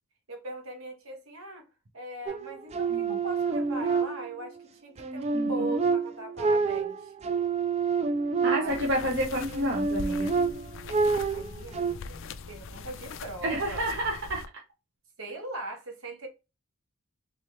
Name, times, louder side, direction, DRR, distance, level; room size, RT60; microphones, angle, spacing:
voice 1, 0.3-1.7 1.9-7.1 8.5-8.9 11.3-13.9 15.2-16.3, right 2 dB, 70° right, 1.2 m, -40 dB
sound 1, 2.3-4.6 5.0-9.0 9.5-11.9, right 4 dB, 30° right, 0.3 m, -28 dB
voice 2, 5.3-5.7 8.4-10.3 13.4-14.4, right 1 dB, 55° right, 0.9 m, -29 dB
sound 2, 8.7-14.5, left 4 dB, 60° left, 0.4 m, -41 dB
3.6 x 3.1 x 3.0 m
head